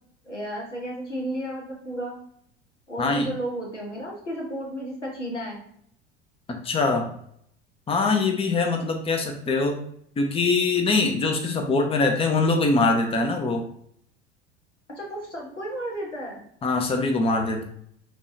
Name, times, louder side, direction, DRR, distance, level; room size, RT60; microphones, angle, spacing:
voice 1, 0.3-2.2 2.9-5.6 14.9-16.4, right 1 dB, 90° left, -2 dB, 1.2 m, -33 dB
voice 2, 3.0-3.3 6.5-7.1 7.9-9.8 10.2-13.6 16.6-17.6, left 3 dB, 15° left, 4 dB, 0.7 m, -23 dB
5.3 x 3.3 x 2.6 m, 0.68 s
figure-of-eight pair, 70°, 35 cm